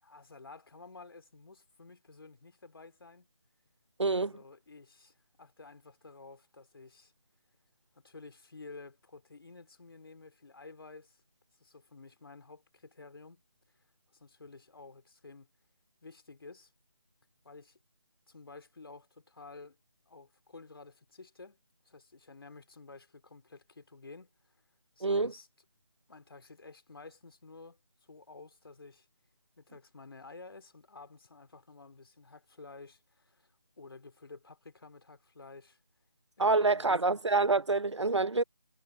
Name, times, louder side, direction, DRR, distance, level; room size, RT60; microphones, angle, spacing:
voice 1, 0.0-3.3 4.2-7.1 8.0-11.2 11.6-13.4 14.1-15.5 16.0-16.7 17.4-17.8 18.3-19.8 20.1-24.3 25.0-25.5 26.1-27.8 28.1-29.1 29.6-35.8 36.4-37.2, left 3 dB, 55° left, 3.6 m, -52 dB
voice 2, 4.0-4.3 25.0-25.3 36.4-38.4, right 3 dB, 70° right, 1.1 m, -27 dB
figure-of-eight pair, 155°, 15 cm